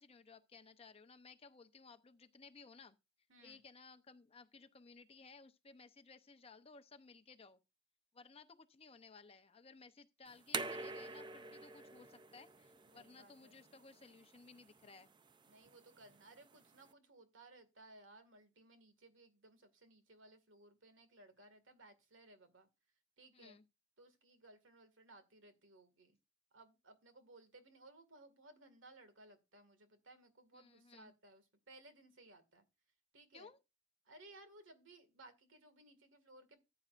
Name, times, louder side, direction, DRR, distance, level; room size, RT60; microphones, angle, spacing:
voice 1, 0.0-3.0 3.4-7.6 8.1-15.1 23.3-23.6 30.5-31.1 33.3-33.6, left 4 dB, 30° left, 0.7 m, -59 dB
voice 2, 3.3-3.6 12.9-13.6 15.5-22.7 23.2-23.6 24.0-26.2 26.5-32.6 33.1-33.5 34.1-36.6, right 2 dB, 70° right, 2.0 m, -61 dB
sound 1, 10.3-16.9, right 4 dB, 25° right, 0.5 m, -48 dB
14.5 x 8.7 x 2.5 m
head